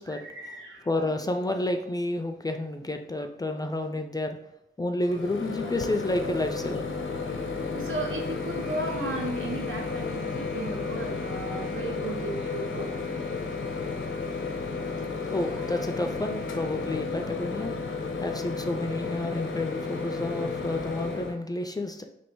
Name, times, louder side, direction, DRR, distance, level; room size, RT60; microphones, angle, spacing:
voice 1, 0.1-0.9 7.2-12.9, right 2 dB, 80° right, 1 dB, 0.9 m, -35 dB
voice 2, 0.9-4.4 4.8-6.9 15.2-17.7 18.2-22.0, left 1 dB, 20° left, 5 dB, 0.3 m, -30 dB
Microwave oven, 5.1-21.3, left 4 dB, 90° left, 0.7 m, -33 dB
3.1 x 2.8 x 4.5 m, 0.78 s
wide cardioid pair, 120°, 20 cm